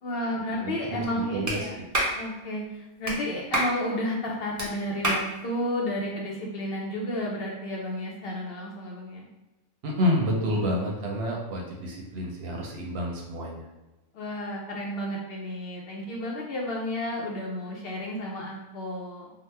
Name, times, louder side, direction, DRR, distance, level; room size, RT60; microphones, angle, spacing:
voice 1, 0.0-1.8 2.1-9.3 14.1-19.3, left 1 dB, 60° left, -2 dB, 0.7 m, -32 dB
voice 2, 0.6-1.1 1.3-1.8 9.8-13.7, equal, 65° right, 0 dB, 0.8 m, -29 dB
Clapping, 1.5-1.6 1.9-2.2 3.0-3.2 3.5-3.7 4.6-4.7 5.0-5.2, right 1 dB, 30° right, 0.3 m, -26 dB
2.9 x 2.0 x 3.2 m, 1.1 s
omnidirectional pair, 1.3 m